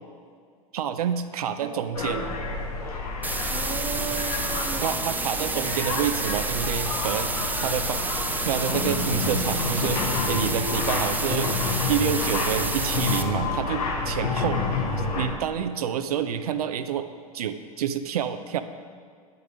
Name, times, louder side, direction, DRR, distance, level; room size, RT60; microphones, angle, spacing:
voice 1, 0.7-2.3 4.8-7.3 7.6-8.0 8.4-10.0 10.3-11.5 11.9-14.6 15.1-17.1 17.3-18.6, right 8 dB, 85° right, 9 dB, 0.5 m, -28 dB
sound 1, 1.9-15.3, left 3 dB, 85° left, 1.3 m, -29 dB
sound 2, 3.2-13.2, right 3 dB, 10° right, 0.6 m, -30 dB
voice 2, 3.5-5.6 7.7-8.0 14.4-14.8, right 7 dB, 35° right, 3 dB, 1.1 m, -37 dB
8.8 x 6.8 x 5.0 m, 2.1 s
hypercardioid pair, 90°, 19 cm